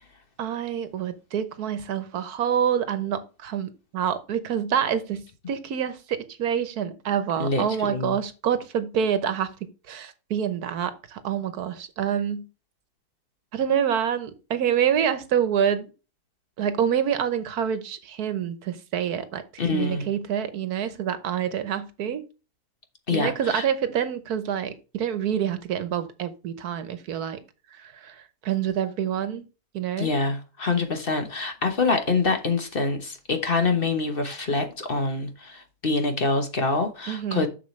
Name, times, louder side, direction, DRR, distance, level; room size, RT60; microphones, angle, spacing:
voice 1, 0.4-9.5 9.9-12.5 13.5-15.9 16.6-19.4 19.7-22.2 23.1-27.4 27.7-29.4 29.7-30.1 37.1-37.5, right 8 dB, 80° right, 1.4 m, -27 dB
voice 2, 7.4-8.2 19.6-20.1 23.1-23.6 30.0-37.5, left 3 dB, 40° left, 1.2 m, -25 dB
7.5 x 6.6 x 3.2 m
omnidirectional pair, 1.6 m